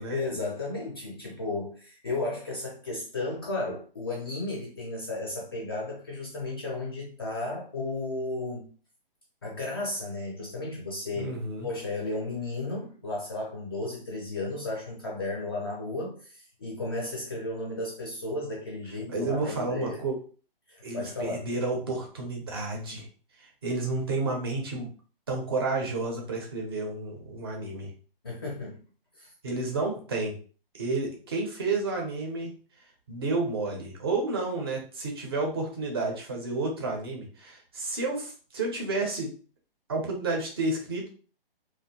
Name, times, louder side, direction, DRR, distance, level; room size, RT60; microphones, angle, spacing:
voice 1, 0.1-8.7 9.4-11.3 11.6-20.0 20.7-21.4 28.2-28.8 29.2-29.3, left 2 dB, 25° left, -3 dB, 0.5 m, -34 dB
voice 2, 11.2-11.7 19.1-20.2 20.8-23.1 23.6-24.9 25.3-27.9 29.4-30.4 30.7-32.5 33.1-39.3 39.9-41.1, right 3 dB, 25° right, 0 dB, 0.5 m, -31 dB
2.6 x 2.1 x 2.7 m, 0.39 s
hypercardioid pair, 155°, 29 cm